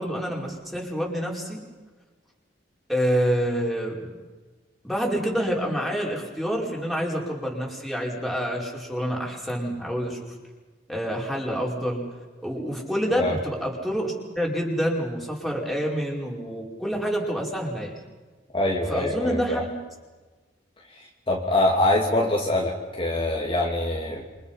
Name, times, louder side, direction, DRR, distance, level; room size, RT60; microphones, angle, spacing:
voice 1, 0.0-1.6 2.9-4.1 4.8-10.3 10.9-12.0 12.4-17.9 18.9-19.7, equal, ahead, -2 dB, 5.0 m, -27 dB
voice 2, 18.5-19.6 21.3-24.2, left 1 dB, 30° left, -2 dB, 2.7 m, -24 dB
28.5 x 25.5 x 5.8 m, 1.3 s
head